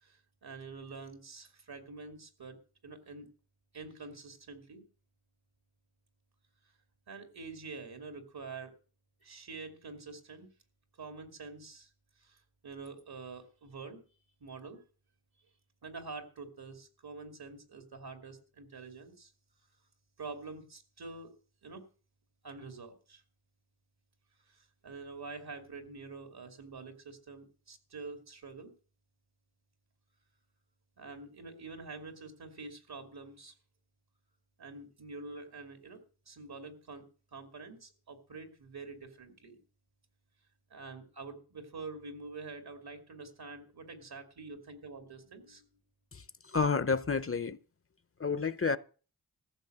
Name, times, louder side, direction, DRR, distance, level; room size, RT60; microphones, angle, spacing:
voice 1, 0.0-2.6 2.8-3.3 3.7-4.8 7.1-8.7 9.2-10.5 11.0-11.9 12.2-12.4 12.6-14.0 14.4-14.8 15.8-19.3 20.2-21.3 21.6-21.8 22.4-23.2 24.5-28.7 31.0-33.5 34.6-37.0 37.3-39.6 40.7-45.7, right 4 dB, 80° right, 2.6 m, -46 dB
voice 2, 46.1-47.6 48.2-48.8, left 5 dB, 35° left, 0.7 m, -30 dB
14.5 x 6.3 x 7.8 m
wide cardioid pair, 60°, 37 cm